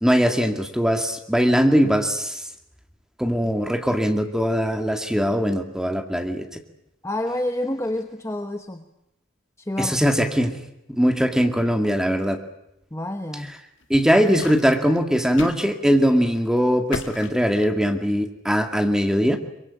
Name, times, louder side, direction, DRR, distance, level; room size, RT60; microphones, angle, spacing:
voice 1, 0.0-2.4 3.2-6.4 9.8-10.6 10.9-12.4 13.9-19.4, equal, 5° right, 5 dB, 2.1 m, -21 dB
voice 2, 7.0-8.8 9.6-10.1 12.9-13.5, left 1 dB, 15° left, 7 dB, 1.1 m, -28 dB
sound 1, 13.8-15.6 16.0-16.2 16.9-18.1, left 3 dB, 85° left, 1.7 m, -35 dB
23.5 x 22.5 x 8.7 m, 0.84 s
head